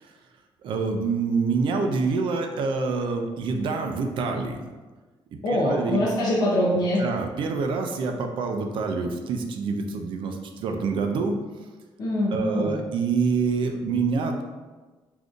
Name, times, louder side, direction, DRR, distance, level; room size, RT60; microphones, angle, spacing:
voice 1, 0.6-4.6 5.3-6.0 7.0-11.4 12.3-14.4, right 4 dB, 65° right, 4 dB, 0.4 m, -26 dB
voice 2, 5.4-7.0 12.0-12.8, left 1 dB, 45° left, -6 dB, 0.6 m, -23 dB
3.6 x 2.6 x 2.4 m, 1.3 s
cardioid pair, 130°, 9 cm